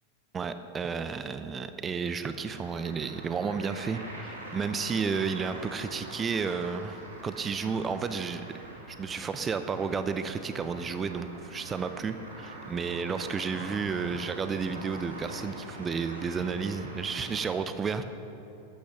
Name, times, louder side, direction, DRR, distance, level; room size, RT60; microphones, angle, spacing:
voice 1, 0.3-8.4 8.9-18.0, right 5 dB, 20° right, 10 dB, 0.7 m, -32 dB
sound 1, 2.4-17.5, right 1 dB, 75° right, 3.4 m, -44 dB
14.5 x 12.5 x 5.9 m, 2.8 s
figure-of-eight pair, 90°, 0 cm